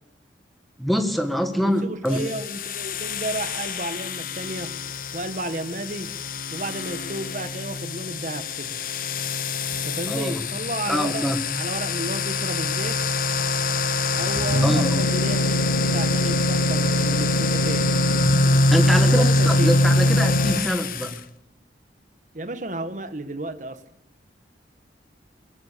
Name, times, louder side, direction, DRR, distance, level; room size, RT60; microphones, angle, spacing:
voice 1, 0.8-2.2 10.1-10.5 10.9-11.4 14.6-14.9 18.7-21.2, equal, ahead, 1.8 m, -24 dB
voice 2, 1.6-4.8 5.1-6.1 6.5-8.8 9.8-11.3 11.5-13.0 14.2-17.9 19.0-19.7 22.3-23.8, right 1 dB, 45° right, 1.5 m, -32 dB
sound 1, 2.1-21.2, left 2 dB, 50° left, 1.1 m, -23 dB
21.0 x 19.0 x 6.9 m
head